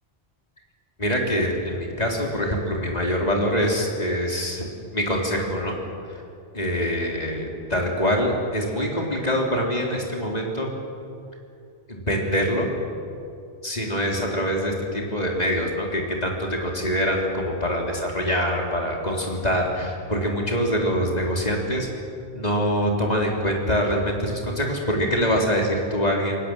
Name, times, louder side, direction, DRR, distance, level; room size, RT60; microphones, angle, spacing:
voice 1, 1.0-4.7 4.9-5.8 6.5-10.7 11.9-12.7 13.6-21.9 22.3-26.4, equal, 40° left, 0 dB, 3.7 m, -24 dB
27.5 x 18.5 x 7.8 m, 2.6 s
omnidirectional pair, 1.1 m